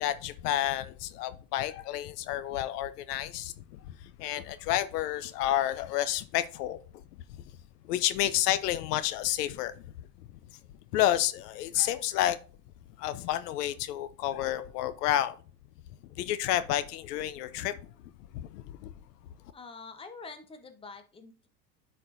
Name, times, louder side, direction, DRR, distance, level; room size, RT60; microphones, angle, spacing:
voice 1, 0.0-6.8 7.8-9.7 10.9-12.4 13.0-15.4 16.2-17.8 18.3-18.9, left 13 dB, 75° left, 0.7 m, -30 dB
voice 2, 19.5-21.5, left 4 dB, 10° left, 0.8 m, -46 dB
9.9 x 4.3 x 2.6 m
hypercardioid pair, 105°, 48 cm